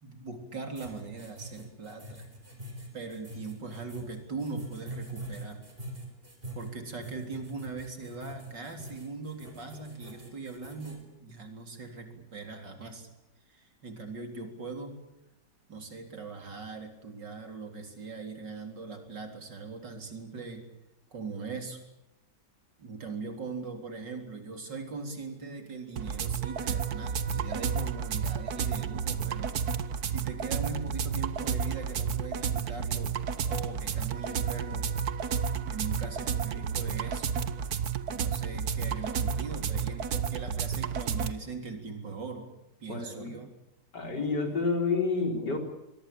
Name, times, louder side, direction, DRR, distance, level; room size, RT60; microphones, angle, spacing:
voice 1, 0.0-2.3 2.9-5.6 6.5-13.1 13.5-15.0 15.7-20.7 21.1-21.8 22.8-29.6 30.1-33.1 33.5-34.9 35.7-37.3 38.1-42.5 42.8-43.5, right 4 dB, 85° right, 4 dB, 4.5 m, -40 dB
sound 1, 0.8-11.0, right 1 dB, 30° right, 5.0 m, -43 dB
sound 2, 26.0-41.3, right 7 dB, 60° right, 1.6 m, -31 dB
voice 2, 42.9-43.3 43.9-45.6, left 4 dB, 75° left, 3 dB, 5.0 m, -29 dB
24.0 x 23.0 x 8.7 m, 0.90 s
omnidirectional pair, 1.9 m